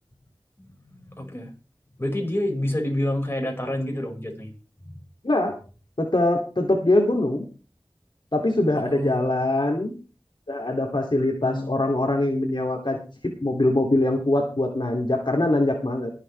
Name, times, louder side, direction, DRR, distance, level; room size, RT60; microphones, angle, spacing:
voice 1, 1.1-1.5 2.0-4.5 4.8-5.0 8.8-9.4 11.4-11.7, left 1 dB, 25° left, 1 dB, 5.5 m, -28 dB
voice 2, 6.0-7.4 8.3-9.9 10.5-16.1, left 1 dB, 55° left, 1 dB, 2.7 m, -23 dB
23.0 x 8.4 x 3.3 m, 0.34 s
wide cardioid pair, 50°, 9 cm